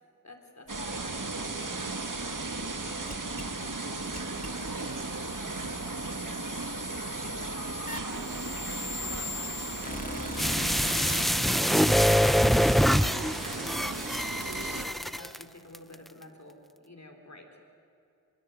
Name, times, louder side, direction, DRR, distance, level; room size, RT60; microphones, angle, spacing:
voice 1, 0.2-5.6 6.1-6.4 7.2-9.6 10.4-11.4 12.4-17.5, left 1 dB, 55° left, 3 dB, 4.0 m, -49 dB
sound 1, 0.7-14.8, right 3 dB, 70° right, 1.9 m, -36 dB
sound 2, 3.1-11.2, left 2 dB, 25° left, 1.7 m, -40 dB
sound 3, 10.4-15.4 15.7-15.8, equal, ahead, 0.6 m, -25 dB
25.5 x 21.0 x 9.3 m, 2.6 s
wide cardioid pair, 45°, 33 cm